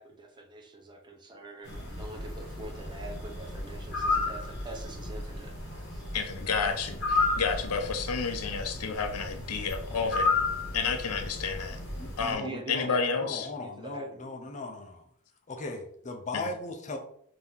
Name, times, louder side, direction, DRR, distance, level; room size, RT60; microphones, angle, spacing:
voice 1, 0.0-5.5 5.9-6.0 12.4-14.5, right 2 dB, 20° right, 2 dB, 0.6 m, -44 dB
sound 1, 1.6-12.3, left 3 dB, 50° left, 1.4 m, -33 dB
voice 2, 6.1-10.3 10.7-11.8 12.2-13.5 16.3-16.4, left 5 dB, 80° left, 6 dB, 0.6 m, -31 dB
voice 3, 11.9-15.0 15.5-17.0, left 2 dB, 35° left, 4 dB, 0.6 m, -38 dB
3.9 x 2.9 x 3.5 m, 0.65 s
head